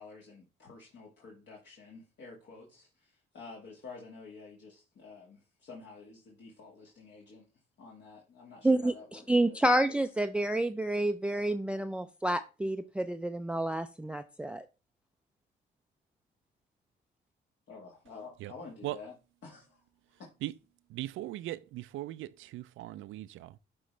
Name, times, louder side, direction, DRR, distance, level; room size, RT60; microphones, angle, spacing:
voice 1, 0.0-7.4 7.8-9.6 9.9-10.0 17.7-19.2 19.4-19.8 20.2-20.3, left 4 dB, 65° left, 1.9 m, -50 dB
voice 2, 8.6-14.7, right 1 dB, 5° right, 0.4 m, -29 dB
voice 3, 20.9-23.6, right 15 dB, 80° right, 0.4 m, -39 dB
11.0 x 3.8 x 3.2 m
cardioid pair, 90°, 20 cm